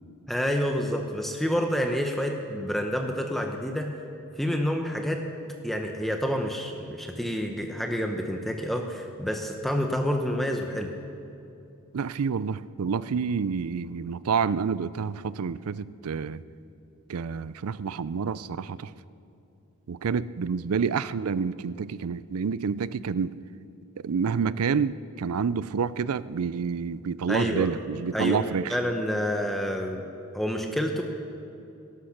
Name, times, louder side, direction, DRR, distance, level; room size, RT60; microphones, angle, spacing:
voice 1, 0.3-3.9 4.4-5.2 5.6-10.9 27.3-27.7 28.1-28.4 28.7-30.0 30.3-31.0, equal, ahead, 3 dB, 0.8 m, -28 dB
voice 2, 11.9-16.4 17.1-18.9 19.9-23.3 24.0-28.7, right 6 dB, 90° right, 17 dB, 0.5 m, -28 dB
19.5 x 11.5 x 6.0 m, 2.7 s
head